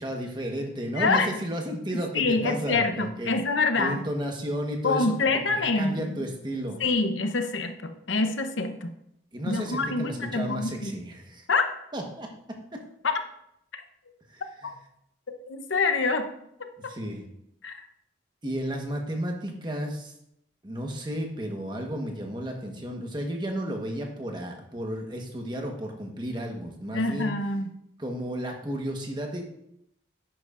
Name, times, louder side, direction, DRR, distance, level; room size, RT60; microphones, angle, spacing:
voice 1, 0.0-3.3 3.8-6.8 9.3-11.5 11.9-12.8 14.3-14.7 16.9-17.2 18.4-20.1 20.6-27.3 28.0-29.4, right 1 dB, 25° right, 2 dB, 1.3 m, -33 dB
voice 2, 0.9-1.3 1.9-4.0 4.8-6.2 6.8-8.9 9.5-10.9 11.5-11.6 13.0-13.2 15.5-16.3 17.6-17.8 26.9-27.7, left 3 dB, 90° left, 6 dB, 0.9 m, -26 dB
10.5 x 9.0 x 2.5 m, 0.77 s
head